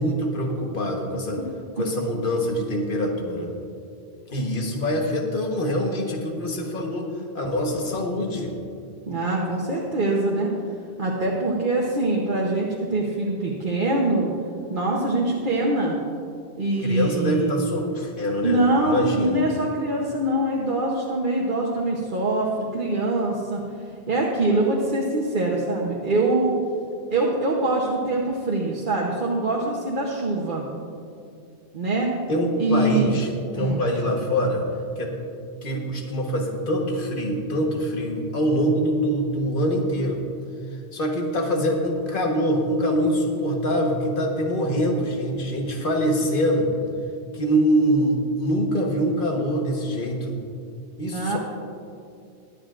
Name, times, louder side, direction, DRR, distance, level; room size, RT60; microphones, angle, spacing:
voice 1, 0.0-1.4 1.8-3.5 4.3-7.1 7.3-8.5 16.8-19.4 32.3-33.3 33.5-34.6 35.0-35.1 35.6-40.2 40.9-46.7 47.3-50.4 51.0-51.4, equal, 50° left, 1 dB, 1.5 m, -24 dB
voice 2, 9.1-10.5 11.0-14.3 14.7-16.0 16.6-17.5 18.4-23.6 24.1-26.6 27.1-30.7 31.7-32.1 32.6-33.1 33.5-33.8 51.1-51.4, right 2 dB, 50° right, -2 dB, 1.1 m, -24 dB
22.5 x 8.3 x 2.5 m, 2.4 s
omnidirectional pair, 1.1 m